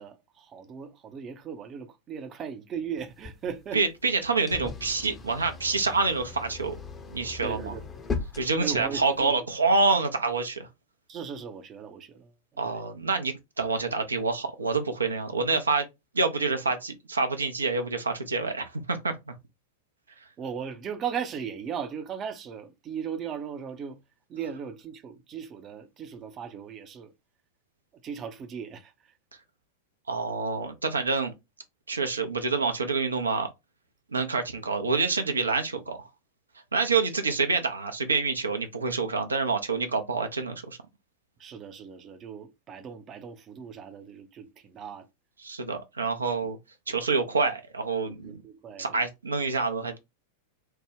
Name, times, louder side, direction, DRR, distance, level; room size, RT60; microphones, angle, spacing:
voice 1, 0.0-3.8 7.4-7.8 8.6-9.3 11.1-12.3 12.6-12.8 20.4-24.0 24.3-27.1 28.0-29.1 41.4-45.1 48.1-49.0, right 7 dB, 30° right, 0.5 m, -37 dB
sound 1, 3.0-9.3, left 4 dB, 20° left, 0.6 m, -39 dB
voice 2, 3.7-6.8 7.1-7.7 8.4-10.7 12.6-15.9 16.1-19.3 30.1-31.3 31.9-33.5 34.1-36.0 36.7-40.8 45.4-46.6 46.9-48.4 48.8-50.0, right 4 dB, 75° right, 0.5 m, -27 dB
3.2 x 2.2 x 3.3 m
figure-of-eight pair, 90°, 0 cm